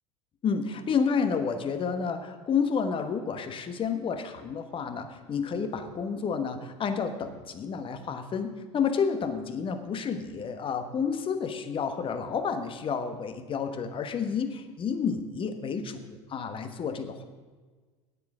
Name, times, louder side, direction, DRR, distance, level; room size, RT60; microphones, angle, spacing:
voice 1, 0.4-17.2, left 6 dB, 35° left, 8 dB, 1.2 m, -30 dB
9.6 x 8.3 x 6.1 m, 1.4 s
hypercardioid pair, 75°, 16 cm